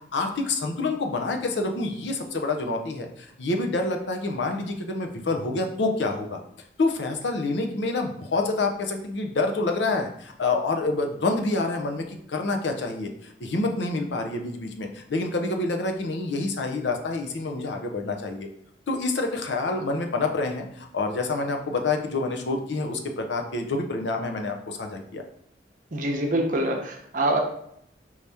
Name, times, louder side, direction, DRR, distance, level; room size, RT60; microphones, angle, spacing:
voice 1, 0.1-6.4 6.8-18.5 18.9-25.2, left 3 dB, 85° left, 4 dB, 0.6 m, -27 dB
voice 2, 25.9-27.4, right 1 dB, 45° right, 2 dB, 0.7 m, -25 dB
4.7 x 2.8 x 3.4 m, 0.70 s
head